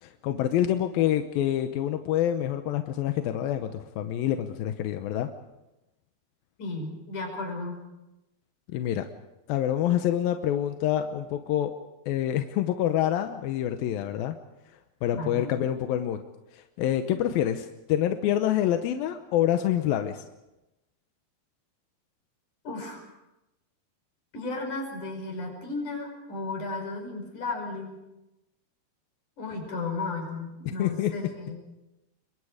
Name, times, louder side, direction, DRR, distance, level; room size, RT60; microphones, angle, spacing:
voice 1, 0.0-5.3 8.7-9.1 9.5-11.7 12.1-14.4 15.0-16.2 16.5-20.2 30.7-31.1, left 11 dB, 75° left, 7 dB, 2.3 m, -27 dB
voice 2, 6.6-7.8 15.1-15.5 22.6-23.0 24.3-28.0 29.4-31.6, left 3 dB, 45° left, 2 dB, 6.9 m, -34 dB
27.5 x 23.0 x 5.0 m, 0.96 s
omnidirectional pair, 5.0 m